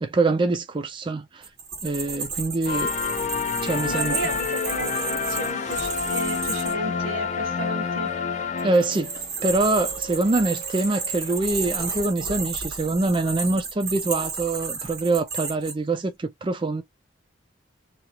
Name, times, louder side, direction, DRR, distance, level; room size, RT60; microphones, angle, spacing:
voice 1, 0.0-1.5 1.8-2.9 3.6-4.2 8.6-9.1 9.4-16.8, right 2 dB, 25° right, 0.3 m, -24 dB
sound 1, 1.4-6.7 8.6-15.7, right 5 dB, 50° right, 1.5 m, -32 dB
sound 2, 2.7-9.2, left 5 dB, 35° left, 0.4 m, -28 dB
voice 2, 3.9-8.1, right 2 dB, 85° right, 1.0 m, -34 dB
sound 3, 6.7-12.0, left 2 dB, 20° left, 1.1 m, -43 dB
2.9 x 2.3 x 2.8 m
head